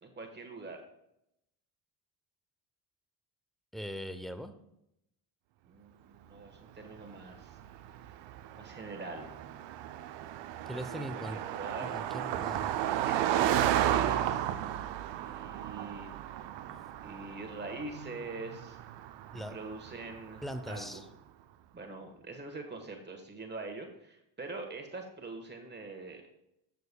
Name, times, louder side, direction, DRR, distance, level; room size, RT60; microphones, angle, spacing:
voice 1, 0.0-0.8 5.7-7.6 8.5-9.3 10.7-12.0 12.8-14.5 15.2-16.1 17.0-18.8 19.3-21.0 21.7-26.2, right 3 dB, 20° right, 4 dB, 1.3 m, -43 dB
voice 2, 3.7-4.5 10.7-11.4 11.8-12.8 19.3-19.6 20.4-21.0, equal, ahead, 9 dB, 0.6 m, -40 dB
Car passing by, 7.0-20.7, right 12 dB, 65° right, 0.6 m, -34 dB
13.5 x 6.8 x 2.2 m, 0.81 s
cardioid pair, 110°, 48 cm